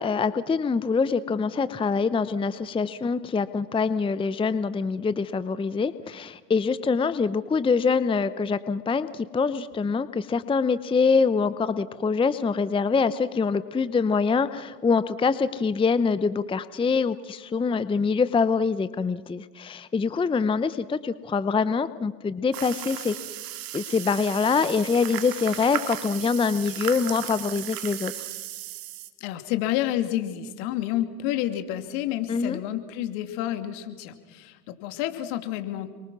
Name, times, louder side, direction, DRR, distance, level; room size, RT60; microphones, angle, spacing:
voice 1, 0.0-23.2 23.7-28.1 32.3-32.6, left 5 dB, 10° left, 14 dB, 0.7 m, -24 dB
sound 1, 22.5-29.1, right 13 dB, 45° right, 2.1 m, -36 dB
voice 2, 29.2-35.9, left 13 dB, 60° left, 8 dB, 2.7 m, -29 dB
30.0 x 23.5 x 6.2 m, 1.4 s
hypercardioid pair, 95°, 48 cm